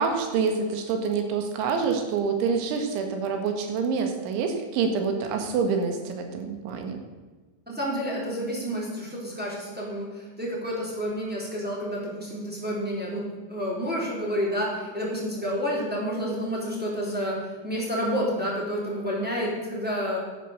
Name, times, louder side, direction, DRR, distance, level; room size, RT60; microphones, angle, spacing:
voice 1, 0.0-7.0, right 5 dB, 75° right, 5 dB, 3.9 m, -26 dB
voice 2, 7.7-20.2, equal, ahead, -5 dB, 3.1 m, -29 dB
13.0 x 9.7 x 6.8 m, 1.3 s
omnidirectional pair, 5.6 m